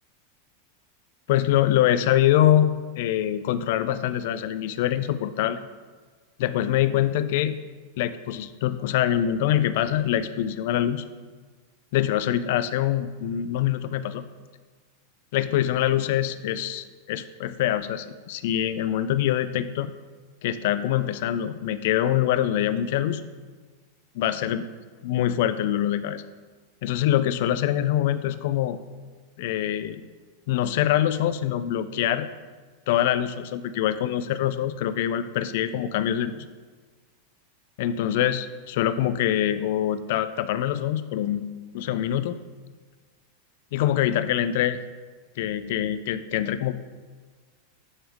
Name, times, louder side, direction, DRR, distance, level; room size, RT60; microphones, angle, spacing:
voice 1, 1.3-5.6 6.4-7.6 8.0-11.0 11.9-14.2 15.3-19.9 20.4-23.2 24.2-24.7 25.0-26.2 26.8-28.8 29.4-30.0 30.5-32.3 32.9-36.5 37.8-41.4 41.7-42.4 43.7-44.8 45.4-46.7, left 11 dB, 60° left, 13 dB, 0.3 m, -24 dB
8.7 x 3.5 x 3.6 m, 1.4 s
supercardioid pair, 145°, 0 cm